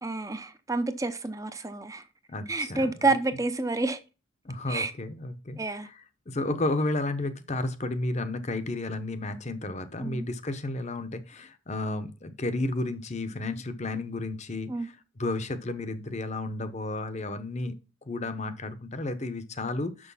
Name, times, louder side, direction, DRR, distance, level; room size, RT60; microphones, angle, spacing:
voice 1, 0.0-2.0 2.5-4.0 4.7-4.9 5.6-5.9 6.5-6.6 10.0-10.3 14.7-14.9, right 3 dB, 15° right, 0.6 m, -29 dB
voice 2, 2.3-2.9 4.4-6.0 6.3-17.8 18.1-20.1, left 2 dB, 35° left, 0.8 m, -32 dB
6.4 x 6.2 x 5.5 m
head